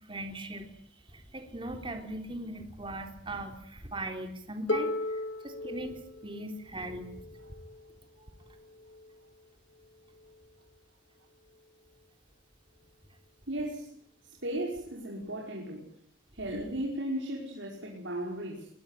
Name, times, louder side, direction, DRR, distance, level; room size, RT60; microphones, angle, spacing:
voice 1, 0.1-0.7 1.1-7.4 8.2-8.4, right 1 dB, 30° right, 5 dB, 3.6 m, -40 dB
Harp, 4.7-10.5 11.5-11.6, left 2 dB, 80° left, 2.4 m, -38 dB
voice 2, 13.5-13.9 14.4-15.8 16.3-18.7, right 1 dB, 90° right, -2 dB, 5.5 m, -35 dB
23.0 x 21.0 x 9.4 m, 0.68 s
head